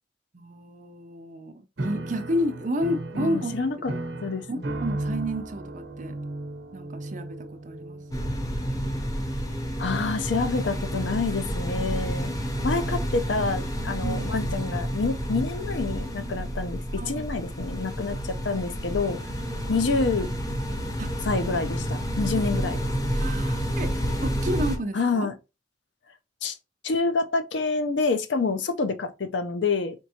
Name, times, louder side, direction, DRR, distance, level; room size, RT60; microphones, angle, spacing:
voice 1, 0.3-3.5 4.5-6.2 6.7-8.1 14.0-14.3 17.0-17.2 21.0-21.1 23.1-23.9 24.2-25.3, equal, 40° right, 0.6 m, -31 dB
Piano, 1.8-8.6, right 2 dB, 60° right, 0.9 m, -35 dB
voice 2, 3.1-3.9 4.2-4.6 9.8-12.3 12.6-19.2 19.7-20.3 21.2-22.8 24.9-25.3 26.4-26.6 26.8-29.9, left 4 dB, 65° left, 0.5 m, -27 dB
sound 1, 8.1-24.8, equal, 20° left, 0.6 m, -29 dB
4.4 x 3.5 x 2.8 m
head